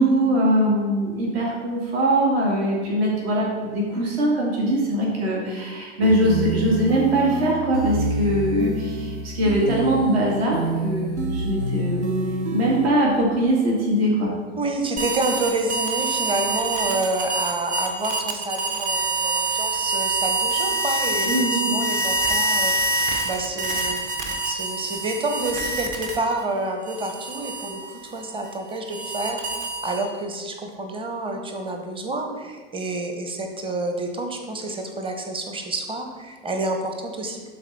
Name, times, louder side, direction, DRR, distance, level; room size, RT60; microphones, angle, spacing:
voice 1, 0.0-12.1 12.5-14.3 21.3-21.7, right 1 dB, 60° right, -3 dB, 2.2 m, -22 dB
sound 1, 6.0-12.9, right 2 dB, 80° right, 1.0 m, -27 dB
voice 2, 14.6-24.0 24.4-29.4 29.8-37.5, right 2 dB, 15° right, 4 dB, 1.1 m, -29 dB
sound 2, 15.0-26.4 26.9-30.2, right 2 dB, 40° right, 1.4 m, -26 dB
12.0 x 4.1 x 4.2 m, 1.4 s
figure-of-eight pair, 85°, 34 cm